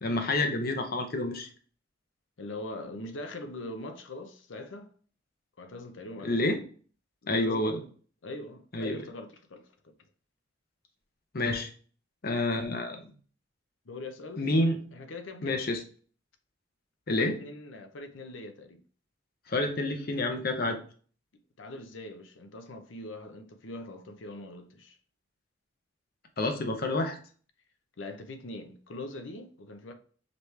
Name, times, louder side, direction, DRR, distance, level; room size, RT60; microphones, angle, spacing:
voice 1, 0.0-1.5 6.2-6.6 7.3-7.8 8.7-9.0 11.3-11.7 12.2-13.0 14.4-14.8 15.4-15.8 17.1-17.4 19.5-20.8 26.4-27.2, left 2 dB, 50° left, 0.8 m, -28 dB
voice 2, 2.4-4.9 5.6-6.5 7.2-7.9 8.2-9.9 13.9-14.5 14.9-15.7 17.2-18.8 21.6-25.0 28.0-29.9, left 2 dB, 90° left, 0.7 m, -42 dB
5.1 x 3.1 x 3.3 m
head